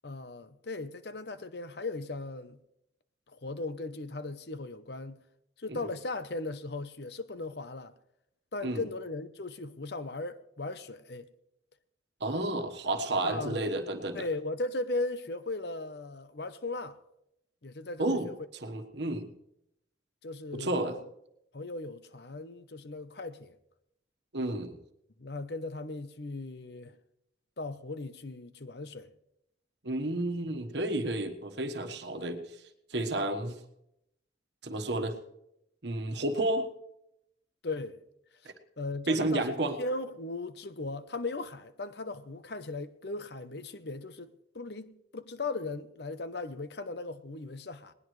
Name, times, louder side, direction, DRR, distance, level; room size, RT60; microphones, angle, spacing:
voice 1, 0.0-2.6 3.3-5.2 5.6-7.9 8.5-11.3 13.2-13.6 14.1-17.0 17.6-18.3 20.2-21.1 21.5-23.6 25.2-27.0 27.6-29.1 37.6-38.0 38.8-47.9, left 2 dB, 60° left, 0.8 m, -37 dB
voice 2, 12.2-14.3 18.0-18.3 18.6-19.3 20.5-21.0 24.3-24.8 29.8-32.6 32.9-33.6 34.6-35.1 35.8-36.7 38.4-38.5 39.1-39.8, right 1 dB, 65° right, 1.4 m, -31 dB
19.5 x 19.0 x 3.2 m
head